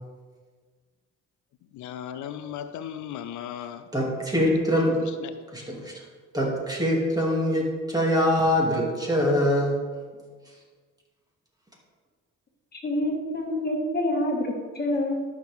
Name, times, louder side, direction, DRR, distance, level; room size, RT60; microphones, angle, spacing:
voice 1, 1.7-3.9 5.2-5.3, left 10 dB, 75° left, 10 dB, 0.5 m, -36 dB
voice 2, 3.9-5.0 5.5-6.0 6.3-9.8 10.4-10.6, equal, 10° right, -2 dB, 2.6 m, -24 dB
voice 3, 12.7-15.3, left 1 dB, 30° left, 0 dB, 2.0 m, -27 dB
12.5 x 6.0 x 3.6 m, 1.5 s
cardioid pair, 90°, 30 cm